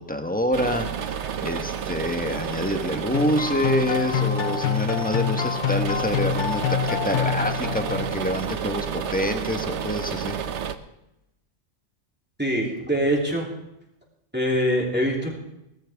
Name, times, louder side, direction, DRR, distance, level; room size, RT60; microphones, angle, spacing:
voice 1, 0.0-10.4, equal, 5° left, 5 dB, 1.3 m, -27 dB
sound 1, 0.5-10.8, right 8 dB, 75° right, 1.1 m, -31 dB
sound 2, 3.1-8.3, left 8 dB, 50° left, 0.7 m, -26 dB
voice 2, 12.4-13.5 14.3-15.4, equal, 10° right, -2 dB, 3.1 m, -23 dB
18.0 x 14.5 x 3.6 m, 0.88 s
omnidirectional pair, 1.2 m